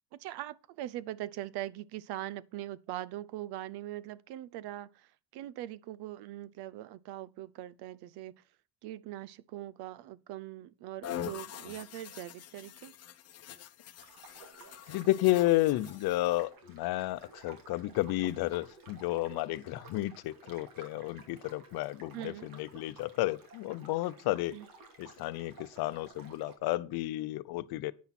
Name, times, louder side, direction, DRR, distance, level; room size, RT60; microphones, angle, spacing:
voice 1, 0.1-8.4 8.8-13.0 22.1-22.5 24.5-24.7, right 14 dB, 80° right, 0.6 m, -42 dB
sound 1, 11.0-16.4, left 10 dB, 40° left, 0.9 m, -44 dB
sound 2, 14.0-26.6, right 3 dB, 60° right, 2.7 m, -54 dB
voice 2, 14.9-24.6 25.0-27.9, left 17 dB, 70° left, 0.7 m, -32 dB
9.9 x 9.5 x 4.3 m
cardioid pair, 145°, 38 cm